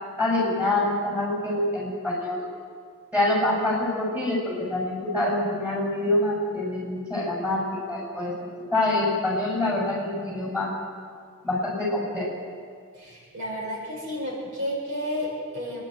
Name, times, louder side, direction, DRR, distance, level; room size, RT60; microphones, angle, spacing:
voice 1, 0.2-2.4 3.1-8.3 8.7-10.7 11.4-12.3, left 1 dB, 5° right, -4 dB, 7.4 m, -25 dB
voice 2, 12.9-15.8, equal, 70° right, -3 dB, 7.1 m, -31 dB
26.5 x 11.5 x 9.3 m, 2.1 s
head